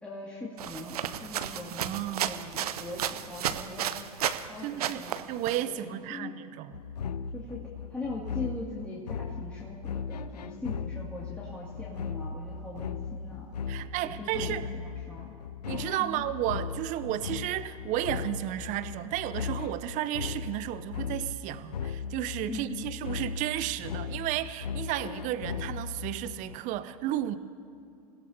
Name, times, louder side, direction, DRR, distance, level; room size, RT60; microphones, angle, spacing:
voice 1, 0.0-3.9 4.5-5.2 5.7-5.8 6.1-6.4 7.3-13.5 14.0-15.3 16.0-16.2 22.5-22.9, left 2 dB, 5° left, -6 dB, 2.4 m, -41 dB
sound 1, 0.6-4.5 4.8-5.6, right 10 dB, 70° right, 0.8 m, -33 dB
voice 2, 1.8-2.4 4.6-6.8 13.7-14.7 15.7-27.4, right 13 dB, 40° right, 13 dB, 0.8 m, -33 dB
sound 2, 6.7-26.6, left 6 dB, 80° left, 0.5 m, -38 dB
29.0 x 16.5 x 2.9 m, 2.6 s
figure-of-eight pair, 95°, 20 cm